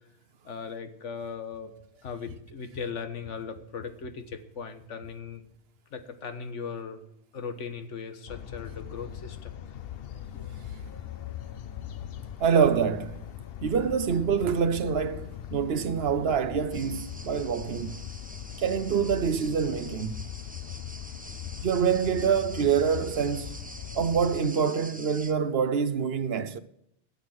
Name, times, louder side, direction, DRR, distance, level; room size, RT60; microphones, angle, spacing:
voice 1, 0.4-5.4 5.9-7.0 7.3-9.5 10.3-10.5, left 5 dB, 90° left, 1.5 m, -38 dB
sound 1, 8.3-24.4, left 10 dB, 60° left, 0.8 m, -40 dB
voice 2, 12.4-13.2 13.6-18.0 18.6-20.2 21.6-23.6 23.9-26.6, right 7 dB, 60° right, 0.9 m, -26 dB
sound 2, 16.7-25.3, right 1 dB, 10° right, 0.9 m, -46 dB
12.5 x 8.2 x 6.3 m
omnidirectional pair, 1.2 m